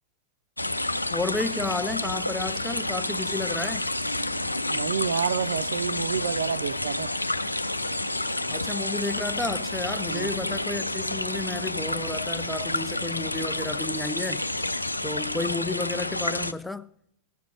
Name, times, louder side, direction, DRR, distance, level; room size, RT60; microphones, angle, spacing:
sound 1, 0.6-16.5, left 2 dB, 85° left, 0.4 m, -29 dB
voice 1, 1.1-3.9 8.5-14.7 15.0-16.9, left 3 dB, 5° left, 0.5 m, -32 dB
voice 2, 4.7-7.1 10.1-10.3, right 7 dB, 65° right, 0.4 m, -29 dB
18.0 x 6.8 x 5.8 m
figure-of-eight pair, 90°, 0 cm